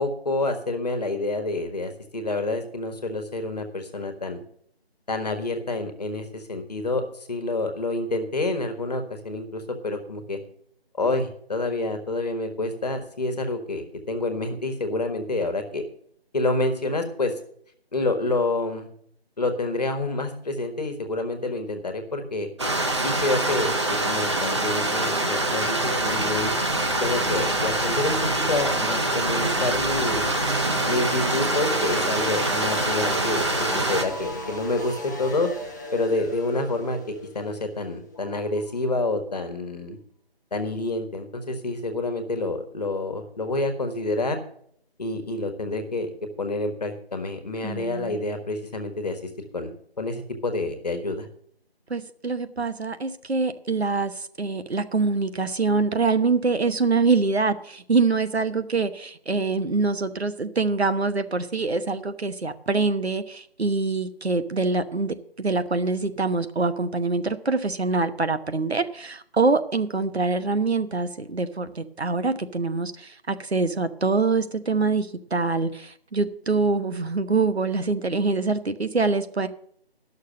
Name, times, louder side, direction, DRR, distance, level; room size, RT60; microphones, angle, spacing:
voice 1, 0.0-4.4 5.1-10.4 11.0-15.8 16.3-17.3 17.9-18.9 19.4-22.5 23.0-26.5 27.0-30.2 30.9-35.5 35.9-40.0 40.5-44.4 45.0-49.2 49.5-51.3, left 2 dB, 40° left, 6 dB, 1.6 m, -28 dB
Stream, 22.6-34.1, right 2 dB, 25° right, 0.9 m, -25 dB
sound 1, 26.1-38.9, equal, 20° left, 0.9 m, -35 dB
voice 2, 47.6-48.2 51.9-79.5, right 4 dB, 80° right, 10 dB, 1.1 m, -25 dB
10.5 x 6.6 x 7.6 m, 0.64 s
figure-of-eight pair, 165°, 31 cm